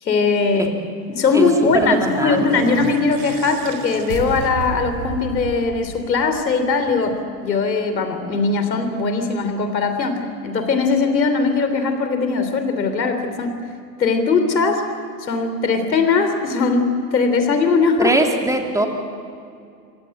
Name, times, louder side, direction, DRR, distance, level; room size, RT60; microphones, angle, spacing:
voice 1, 0.0-0.7 1.1-13.6 14.0-14.8 15.2-18.1, left 4 dB, 85° left, 7 dB, 3.5 m, -20 dB
sound 1, 1.2-6.6, right 6 dB, 50° right, 2.4 m, -32 dB
voice 2, 1.7-2.6 18.0-18.9, right 1 dB, 5° right, 2 dB, 3.0 m, -21 dB
27.0 x 17.0 x 9.0 m, 2.3 s
hypercardioid pair, 105°, 50 cm